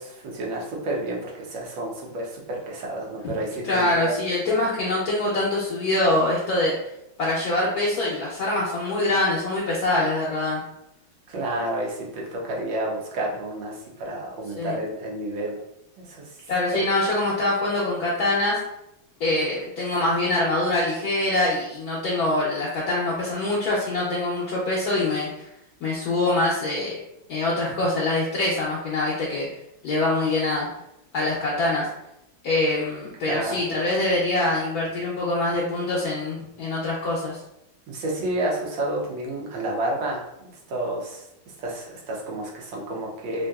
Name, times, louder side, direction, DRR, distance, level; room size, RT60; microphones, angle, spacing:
voice 1, 0.0-4.2 11.3-15.6 16.0-16.3 16.7-16.8 33.3-33.6 37.9-41.2 41.6-43.5, right 1 dB, 85° right, -2 dB, 1.5 m, -30 dB
voice 2, 3.6-6.8 7.2-10.6 14.6-14.8 16.5-18.6 19.2-25.5 25.8-27.0 27.3-29.5 29.8-30.7 31.1-31.9 32.4-37.4, left 2 dB, 65° left, -5 dB, 1.0 m, -24 dB
3.6 x 2.6 x 2.3 m, 0.82 s
omnidirectional pair, 2.0 m